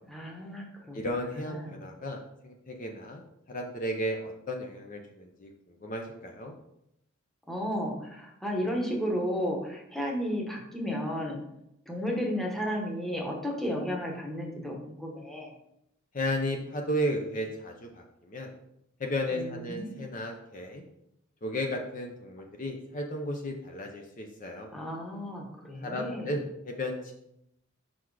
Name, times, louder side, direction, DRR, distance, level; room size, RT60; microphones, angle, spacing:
voice 1, 0.1-1.8 7.5-11.4 11.9-15.5 19.3-19.9 24.7-26.3, equal, ahead, 0 dB, 1.0 m, -33 dB
voice 2, 0.9-3.2 3.5-6.5 16.1-18.5 19.0-20.8 21.4-24.7 25.8-27.1, equal, 40° left, 2 dB, 0.6 m, -34 dB
5.7 x 4.2 x 4.7 m, 0.80 s
head